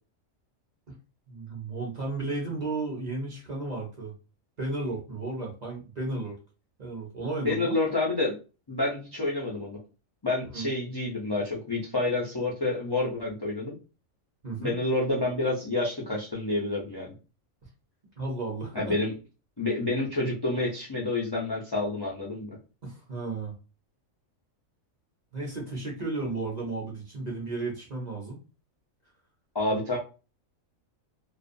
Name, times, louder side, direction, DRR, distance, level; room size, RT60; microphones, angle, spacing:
voice 1, 1.3-4.1 4.6-6.4 6.8-7.8 10.5-10.7 14.4-14.7 18.2-19.0 22.8-23.5 25.3-28.4 29.7-29.8, right 3 dB, 40° right, -2 dB, 0.6 m, -34 dB
voice 2, 7.4-8.4 8.7-9.8 10.2-13.8 14.6-17.1 18.7-19.1 19.6-22.6 29.5-30.0, left 2 dB, 40° left, -4 dB, 0.3 m, -28 dB
2.4 x 2.2 x 2.5 m, 0.32 s
omnidirectional pair, 1.4 m